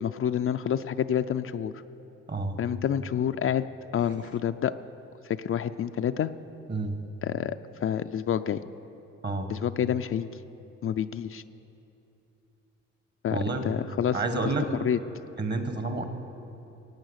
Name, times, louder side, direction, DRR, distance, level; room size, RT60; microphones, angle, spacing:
voice 1, 0.0-1.7 2.6-3.6 3.9-4.7 5.2-6.3 7.2-8.6 9.5-10.3 10.8-11.4 13.2-14.2 14.8-15.0, left 9 dB, 45° left, 10 dB, 0.5 m, -28 dB
voice 2, 6.7-7.0 9.2-9.5 13.3-13.7 14.1-14.7 15.4-16.0, right 3 dB, 35° right, 7 dB, 1.6 m, -29 dB
15.5 x 9.1 x 8.1 m, 2.9 s
cardioid pair, 90°, 30 cm